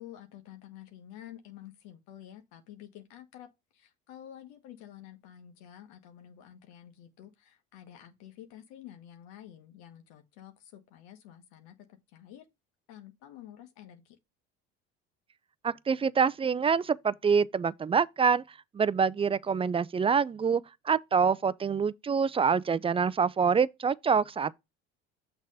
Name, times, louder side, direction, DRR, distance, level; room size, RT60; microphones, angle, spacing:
voice 1, 0.0-12.4 12.9-14.2, left 11 dB, 75° left, 1.4 m, -50 dB
voice 2, 15.6-18.4 18.7-24.5, right 6 dB, 20° right, 0.4 m, -26 dB
6.3 x 3.5 x 5.5 m
supercardioid pair, 85°, 29 cm